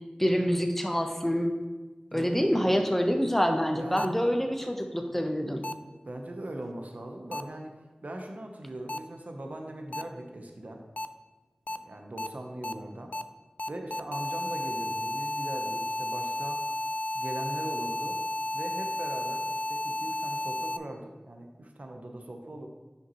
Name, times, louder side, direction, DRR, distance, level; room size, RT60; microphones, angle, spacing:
voice 1, 0.2-1.5 2.1-5.6, equal, 10° left, 4 dB, 0.9 m, -26 dB
voice 2, 2.1-2.8 3.8-4.1 6.0-7.7 8.0-10.8 11.7-13.1 13.7-16.6 17.1-18.2 18.5-22.7, right 1 dB, 65° right, 2 dB, 0.9 m, -40 dB
sound 1, 4.0-4.1 5.6-5.7 7.3-7.4 8.9-9.0 9.9-10.0 11.0-11.1 11.7-11.8 12.2-12.3 12.6-12.7 13.1-13.2 13.6-20.8, left 1 dB, 55° left, 0.3 m, -32 dB
9.7 x 5.7 x 3.1 m, 1.3 s
wide cardioid pair, 45°, 3 cm